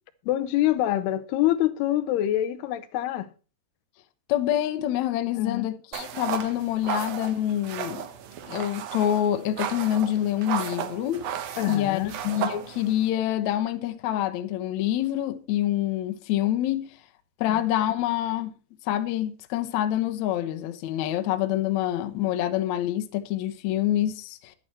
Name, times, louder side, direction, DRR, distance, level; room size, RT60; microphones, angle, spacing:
voice 1, 0.3-3.3 5.4-5.7 11.6-12.1 17.5-17.6, left 13 dB, 90° left, 2.9 m, -25 dB
voice 2, 4.3-8.1 8.5-11.3 11.7-16.9 17.4-18.5 18.9-24.5, left 12 dB, 70° left, 1.7 m, -26 dB
sound 1, 5.9-13.1, right 9 dB, 90° right, 1.4 m, -34 dB
11.5 x 10.5 x 4.3 m
omnidirectional pair, 4.6 m